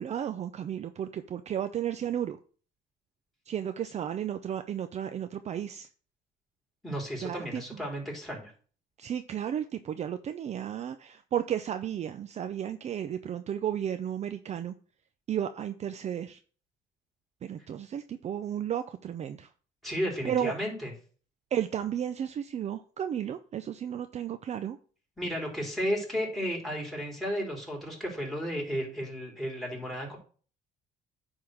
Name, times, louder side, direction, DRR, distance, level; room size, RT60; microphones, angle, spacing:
voice 1, 0.0-2.4 3.5-5.9 7.2-7.6 9.0-14.7 15.3-16.4 17.4-19.5 20.2-20.5 21.5-24.8, right 9 dB, 40° right, 10 dB, 0.5 m, -33 dB
voice 2, 6.8-8.5 19.8-20.9 25.2-30.2, equal, ahead, -1 dB, 3.9 m, -33 dB
9.4 x 3.7 x 6.3 m, 0.41 s
cardioid pair, 110°, 17 cm